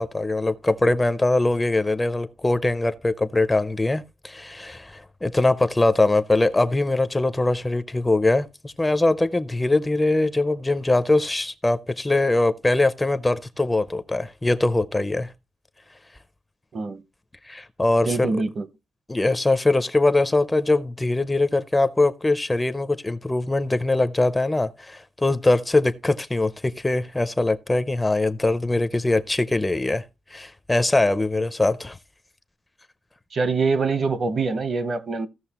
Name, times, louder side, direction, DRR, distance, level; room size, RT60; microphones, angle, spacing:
voice 1, 0.0-15.3 17.4-18.3 19.1-30.0 30.3-32.0, left 2 dB, 10° left, 0.4 m, -22 dB
voice 2, 18.0-18.7 33.3-35.3, right 4 dB, 40° right, 0.8 m, -24 dB
15.5 x 6.2 x 2.8 m
wide cardioid pair, 175°, 0 cm